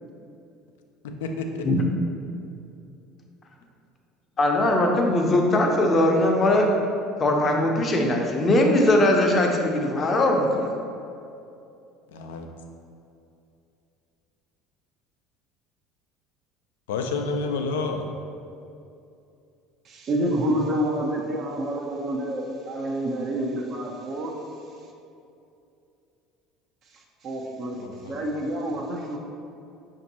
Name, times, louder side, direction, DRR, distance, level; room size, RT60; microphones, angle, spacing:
voice 1, 1.0-1.7 12.1-12.5 16.9-18.1 27.8-28.2, left 3 dB, 75° left, 4 dB, 0.3 m, -29 dB
voice 2, 4.4-6.7 7.2-10.7, left 1 dB, 35° left, 1 dB, 0.6 m, -20 dB
voice 3, 19.8-24.9 26.8-29.2, right 1 dB, 50° right, 0 dB, 0.6 m, -29 dB
5.7 x 2.6 x 2.8 m, 2.6 s
hypercardioid pair, 70°, 0 cm